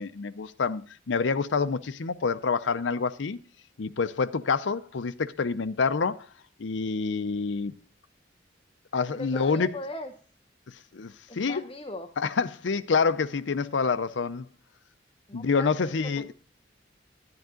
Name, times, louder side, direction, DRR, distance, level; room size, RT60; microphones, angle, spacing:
voice 1, 0.0-3.4 3.8-6.3 6.6-7.7 8.9-9.7 10.9-11.6 12.2-14.5 15.3-16.3, left 5 dB, 85° left, 0.6 m, -27 dB
voice 2, 9.1-10.1 11.3-12.1 15.3-16.3, left 2 dB, 30° left, 0.7 m, -39 dB
10.5 x 10.5 x 3.7 m
head